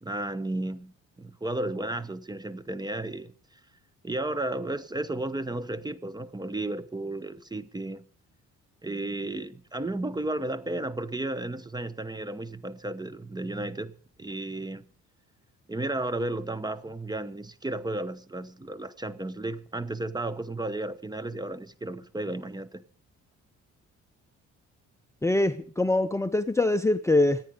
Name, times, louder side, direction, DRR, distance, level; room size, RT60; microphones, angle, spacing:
voice 1, 0.0-3.3 4.0-8.0 8.8-13.9 14.2-14.9 15.7-22.8, right 2 dB, 15° right, 1.0 m, -33 dB
voice 2, 25.2-27.4, left 2 dB, 10° left, 0.7 m, -23 dB
25.5 x 9.0 x 5.0 m
cardioid pair, 90°, 30 cm